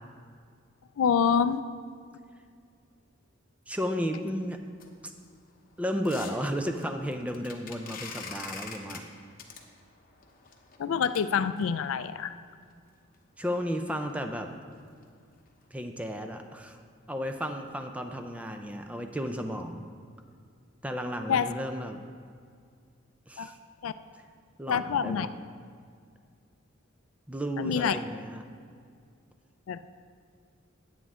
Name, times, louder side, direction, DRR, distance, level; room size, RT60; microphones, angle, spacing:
voice 1, 1.0-1.6 10.8-12.3 21.3-21.5 23.4-23.5 23.8-23.9 24.7-25.3 27.6-28.0 29.7-29.9, left 7 dB, 80° left, 13 dB, 0.4 m, -26 dB
voice 2, 3.7-4.6 5.8-9.0 13.4-14.5 15.7-16.8 17.1-19.9 20.8-22.0 23.3-23.6 24.6-25.3 27.3-28.4, equal, 5° right, 5 dB, 0.4 m, -33 dB
sound 1, 4.7-12.1 12.7-12.8 13.1-13.2 13.5-13.7 14.0-14.1 14.5-14.8 15.0-15.1 15.6-15.7, left 5 dB, 45° left, 0.9 m, -46 dB
9.2 x 9.1 x 3.7 m, 2.2 s
head